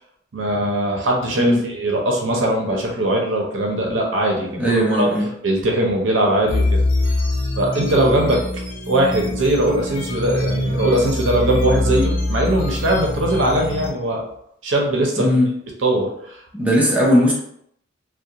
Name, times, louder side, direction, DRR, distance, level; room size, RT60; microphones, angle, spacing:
voice 1, 0.3-5.1 5.4-6.9 7.6-8.5 8.9-14.2 14.6-15.4 15.8-16.4, right 1 dB, 70° right, 0 dB, 0.6 m, -20 dB
voice 2, 4.5-5.3 15.2-15.5 16.5-17.3, equal, 10° right, -5 dB, 0.6 m, -17 dB
sound 1, 6.5-13.9, left 2 dB, 80° left, 0.8 m, -23 dB
2.4 x 2.2 x 2.7 m, 0.72 s
head